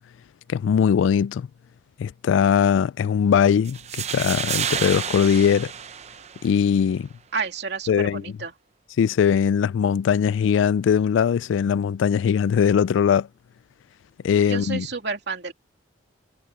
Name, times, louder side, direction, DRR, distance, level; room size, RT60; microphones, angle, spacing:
voice 1, 0.5-1.5 2.0-5.7 6.4-7.1 7.9-8.2 9.0-13.3 14.2-14.9, left 7 dB, 75° left, 0.3 m, -20 dB
sound 1, 3.7-6.7, right 8 dB, 35° right, 0.6 m, -30 dB
voice 2, 7.3-8.5 14.5-15.5, right 4 dB, 60° right, 3.0 m, -30 dB
head